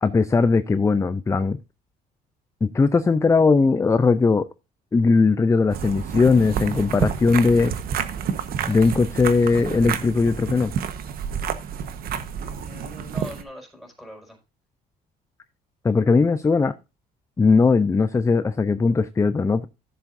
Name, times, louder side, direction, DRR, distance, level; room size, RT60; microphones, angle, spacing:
voice 1, 0.0-1.6 2.6-4.5 4.9-7.7 8.7-10.7 15.8-16.7 17.4-19.7, left 4 dB, 20° left, 0.5 m, -19 dB
sound 1, 5.7-13.4, right 8 dB, 60° right, 1.2 m, -29 dB
voice 2, 12.4-14.4, equal, ahead, 5.3 m, -41 dB
14.5 x 7.3 x 2.6 m
cardioid pair, 110°, 17 cm